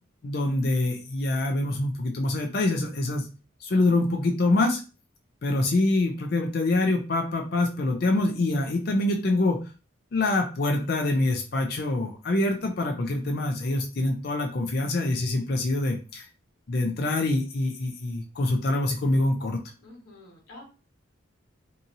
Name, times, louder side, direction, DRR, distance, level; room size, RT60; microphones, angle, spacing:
voice 1, 0.2-3.3 3.6-4.8 5.4-9.6 10.1-16.3 16.7-19.6, left 2 dB, 50° left, 3 dB, 0.4 m, -25 dB
voice 2, 19.8-20.6, left 2 dB, 85° left, -2 dB, 1.1 m, -48 dB
2.7 x 2.7 x 2.6 m, 0.34 s
head